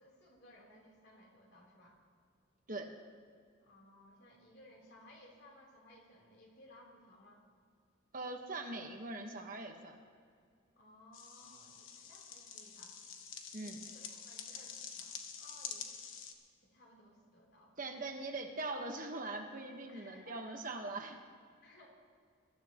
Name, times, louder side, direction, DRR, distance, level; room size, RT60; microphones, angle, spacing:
voice 1, 0.0-2.0 3.6-7.4 10.8-12.9 13.5-15.9 16.6-18.2 19.9-20.6 21.6-21.9, left 1 dB, 55° left, -2 dB, 3.4 m, -60 dB
voice 2, 8.1-10.0 13.5-13.8 17.8-21.2, right 2 dB, 45° right, 3 dB, 1.2 m, -42 dB
sound 1, 11.1-16.3, left 7 dB, 80° left, 1.2 m, -47 dB
23.0 x 13.0 x 3.0 m, 2.1 s
head